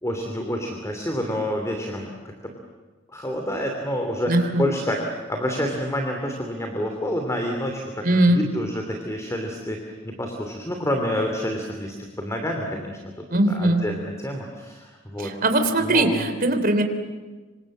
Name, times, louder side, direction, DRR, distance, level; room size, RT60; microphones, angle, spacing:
voice 1, 0.0-2.1 3.1-13.0 13.5-15.3 15.8-16.3, equal, 15° left, 3 dB, 2.9 m, -28 dB
voice 2, 4.3-4.7 8.0-8.4 13.3-13.8 15.2-16.8, right 1 dB, 50° right, 7 dB, 3.2 m, -20 dB
27.0 x 25.5 x 7.5 m, 1.3 s
head